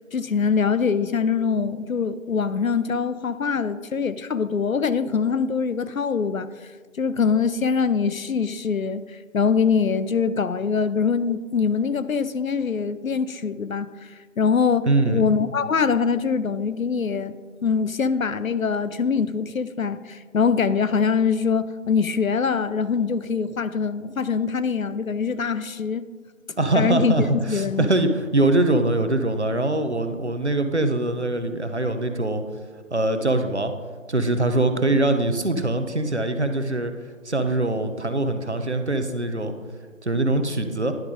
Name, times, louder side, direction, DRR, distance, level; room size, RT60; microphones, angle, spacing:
voice 1, 0.1-6.5 7.0-9.0 9.3-14.1 14.4-17.3 17.6-26.1 26.7-27.1 27.5-27.9, left 5 dB, 90° left, 13 dB, 0.6 m, -23 dB
voice 2, 14.9-15.3 26.6-32.4 32.9-33.7 34.1-36.9 37.2-39.5 40.0-40.9, right 2 dB, 55° right, 8 dB, 0.7 m, -23 dB
10.5 x 5.1 x 3.7 m, 1.4 s
figure-of-eight pair, 180°, 40 cm